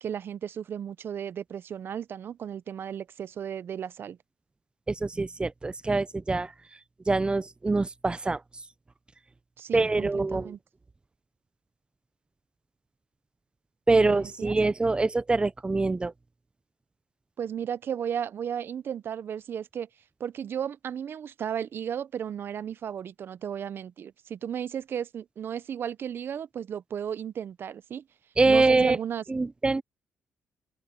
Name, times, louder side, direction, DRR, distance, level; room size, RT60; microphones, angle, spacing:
voice 1, 0.0-4.2 9.6-10.6 14.0-14.5 17.4-19.9 20.2-28.0 28.5-29.2, right 8 dB, 60° right, 0.7 m, -34 dB
voice 2, 4.9-6.5 7.1-8.4 9.7-10.5 13.9-16.1 28.4-29.0 29.3-29.8, right 3 dB, 25° right, 0.6 m, -24 dB
open air
cardioid pair, 75°, 4 cm